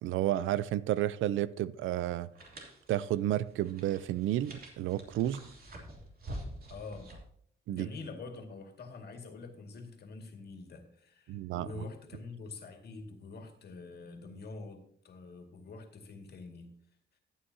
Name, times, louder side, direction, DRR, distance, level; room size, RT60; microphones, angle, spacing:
voice 1, 0.0-2.3 2.9-5.4 7.7-7.9 11.3-11.9, right 13 dB, 80° right, 0.5 m, -31 dB
sound 1, 2.3-7.3, right 1 dB, 50° right, 2.8 m, -47 dB
voice 2, 6.7-7.1 7.7-16.7, left 3 dB, 55° left, 2.2 m, -46 dB
14.0 x 9.2 x 2.8 m
cardioid pair, 90°, 20 cm